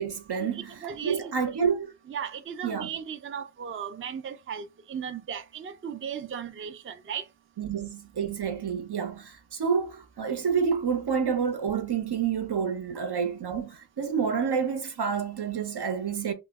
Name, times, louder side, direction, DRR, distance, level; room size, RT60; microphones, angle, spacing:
voice 1, 0.0-1.9 2.6-2.9 7.6-16.3, right 6 dB, 80° right, 0.7 m, -29 dB
voice 2, 0.5-1.3 2.1-7.2, right 7 dB, 35° right, 0.4 m, -36 dB
3.0 x 2.0 x 3.4 m
wide cardioid pair, 65°, 39 cm